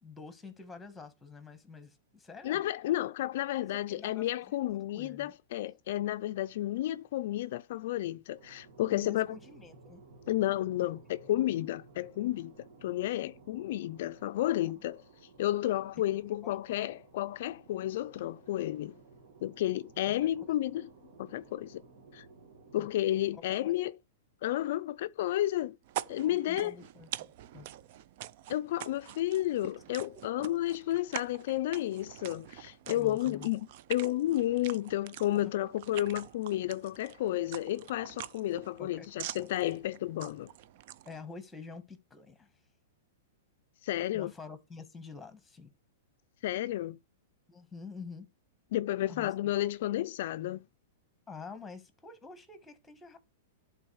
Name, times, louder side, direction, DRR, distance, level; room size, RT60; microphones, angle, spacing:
voice 1, 0.0-2.6 3.6-5.3 8.8-10.0 10.8-10.9 14.7-14.8 16.1-16.6 20.2-20.3 22.8-22.9 23.3-23.7 26.2-27.7 32.8-33.5 35.3-35.7 38.8-39.5 41.0-42.6 44.1-45.7 47.5-48.3 49.1-49.3 51.3-53.2, left 4 dB, 5° left, 1.2 m, -48 dB
voice 2, 2.4-9.4 10.3-12.5 12.8-15.0 15.4-19.0 19.4-20.9 21.2-21.8 22.1-22.3 22.7-23.9 24.4-25.8 26.1-26.7 28.5-40.5 43.8-44.3 46.4-47.0 48.7-50.6, left 14 dB, 60° left, 0.3 m, -32 dB
sound 1, 8.4-23.4, right 3 dB, 80° right, 1.8 m, -56 dB
sound 2, 25.8-41.2, right 13 dB, 50° right, 0.4 m, -45 dB
11.0 x 3.9 x 3.1 m
hypercardioid pair, 145°, 0 cm